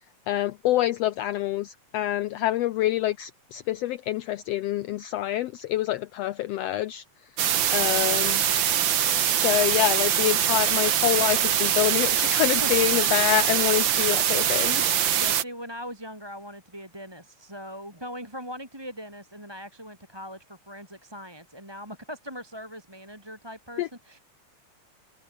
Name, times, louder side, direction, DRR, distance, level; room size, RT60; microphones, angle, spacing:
voice 1, 0.3-7.0 7.7-8.4 9.3-14.9 23.8-23.9, left 14 dB, 75° left, 1.6 m, -26 dB
sound 1, 7.4-15.4, right 9 dB, 55° right, 1.6 m, -23 dB
voice 2, 7.5-8.1 12.6-12.7 15.2-24.2, equal, 10° right, 3.5 m, -40 dB
omnidirectional pair, 3.3 m